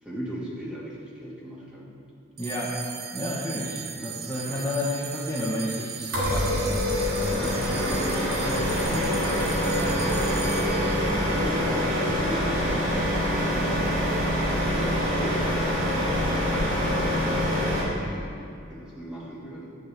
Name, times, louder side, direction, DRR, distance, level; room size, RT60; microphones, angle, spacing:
voice 1, 0.0-2.0 4.4-4.6 7.3-9.1 11.3-12.7 14.5-16.6 17.0-18.4 18.7-19.8, right 1 dB, 5° right, -6 dB, 2.2 m, -38 dB
voice 2, 2.4-2.8 3.1-6.9 8.4-8.5 11.0-11.3, left 1 dB, 15° left, -9 dB, 1.7 m, -31 dB
sound 1, 2.4-13.0, right 9 dB, 50° right, 0.7 m, -39 dB
sound 2, 6.1-17.8, equal, 80° right, 3.1 m, -25 dB
11.0 x 5.5 x 8.3 m, 2.4 s
head